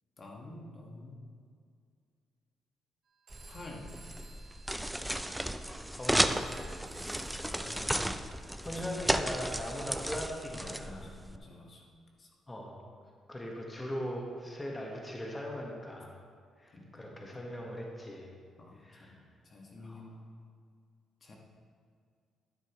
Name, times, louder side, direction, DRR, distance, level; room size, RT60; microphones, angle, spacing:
voice 1, 0.2-1.2 3.5-3.9 7.4-8.2 8.6-9.0 10.5-11.9 12.2-12.3 16.7-17.4 18.6-19.2 19.4-20.3 21.2-21.4, left 2 dB, 45° left, -1 dB, 1.3 m, -49 dB
sound 1, 3.3-11.4, equal, 5° right, 0.4 m, -34 dB
Telephone, 3.3-8.8, right 4 dB, 55° right, 0.9 m, -58 dB
voice 2, 5.9-6.7 8.6-11.1 12.5-12.8 13.3-16.2 16.6-18.3 18.8-19.2 19.8-20.0, equal, 20° left, -1 dB, 1.2 m, -40 dB
11.5 x 6.7 x 3.0 m, 2.2 s
cardioid pair, 90°, 0 cm